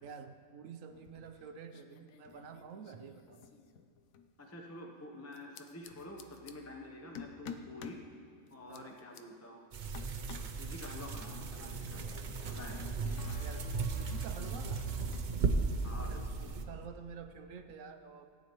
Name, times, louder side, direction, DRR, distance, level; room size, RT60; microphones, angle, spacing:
voice 1, 0.0-3.5 8.7-9.0 13.4-14.9 16.0-18.3, right 6 dB, 75° right, 7 dB, 1.0 m, -49 dB
sound 1, 0.9-1.4 1.7-4.3 5.3-6.5 7.1-8.0 8.5-9.2 9.9-10.6 11.3-15.3 15.6-16.9, left 6 dB, 85° left, 1.1 m, -52 dB
voice 2, 4.4-8.1 8.5-9.9 10.3-12.9 13.2-13.4 15.8-16.1, left 1 dB, 15° left, 1 dB, 0.6 m, -48 dB
sound 2, 5.8-6.7 13.2-16.2, right 4 dB, 65° left, 1.1 m, -43 dB
sound 3, 9.7-16.6, right 4 dB, 50° right, 0.6 m, -36 dB
17.0 x 9.5 x 3.0 m, 2.4 s
omnidirectional pair, 1.4 m